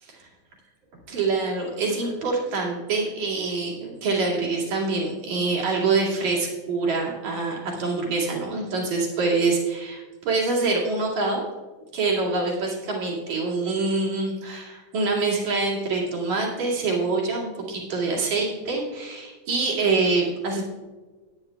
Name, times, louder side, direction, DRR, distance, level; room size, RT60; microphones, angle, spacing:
voice 1, 1.1-11.4 11.9-20.6, right 3 dB, 70° right, -3 dB, 3.6 m, -25 dB
17.0 x 9.4 x 2.3 m, 1.3 s
omnidirectional pair, 3.5 m